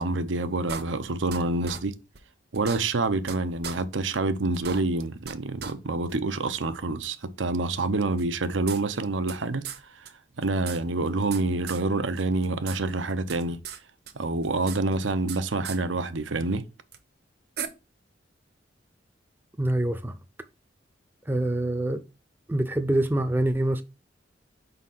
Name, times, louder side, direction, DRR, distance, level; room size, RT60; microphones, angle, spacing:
voice 1, 0.0-1.9 2.5-10.1 10.4-13.6 14.1-16.6, right 3 dB, 90° right, 0.8 m, -27 dB
sound 1, 0.7-1.4 1.7-1.8 2.2-2.3 2.5-3.4 3.6-3.8 4.2-4.3 4.5-5.3 5.6-5.7 6.1-6.2 7.0-7.1 8.2-9.4 9.6-9.8 10.1-10.2 10.4-11.4 11.7-11.8 12.2-12.8 13.0-13.8 14.1-15.4 15.6-15.8 16.9-17.0 17.6-17.7, right 7 dB, 55° right, 0.9 m, -37 dB
voice 2, 19.6-20.2 21.3-22.0 22.5-23.8, right 1 dB, 10° right, 0.5 m, -25 dB
5.2 x 4.0 x 5.6 m
head